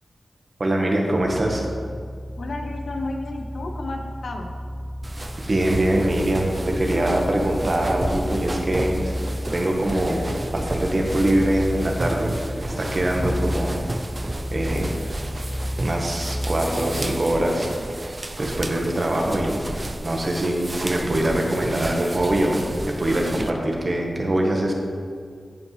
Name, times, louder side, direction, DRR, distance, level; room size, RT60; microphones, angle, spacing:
voice 1, 0.6-1.7 5.5-9.1 9.5-10.2 10.5-13.7 14.5-14.9 15.8-17.7 18.4-19.6 20.0-22.6 22.9-24.7, right 1 dB, 40° right, 0 dB, 1.3 m, -23 dB
sound 1, 1.2-17.3, equal, 15° left, 0.6 m, -32 dB
voice 2, 2.4-4.5, left 2 dB, 75° left, 3 dB, 0.9 m, -32 dB
sound 2, 5.0-23.5, right 1 dB, 25° right, 0.5 m, -32 dB
16.0 x 5.4 x 3.3 m, 2.1 s
wide cardioid pair, 100°, 0 cm